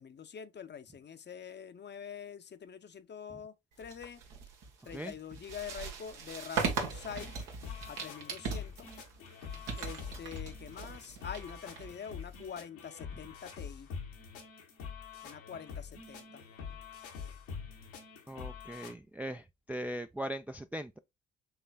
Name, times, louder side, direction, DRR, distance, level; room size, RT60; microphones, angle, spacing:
voice 1, 0.0-4.2 4.8-7.4 7.9-8.9 9.8-13.9 15.2-16.5, left 7 dB, 35° left, 0.6 m, -45 dB
sound 1, 3.8-12.5, right 5 dB, 75° right, 1.1 m, -40 dB
sound 2, 7.0-18.9, left 6 dB, 80° left, 1.2 m, -46 dB
voice 2, 18.3-21.0, right 1 dB, 5° right, 0.3 m, -39 dB
5.6 x 3.2 x 2.3 m
hypercardioid pair, 50°, 31 cm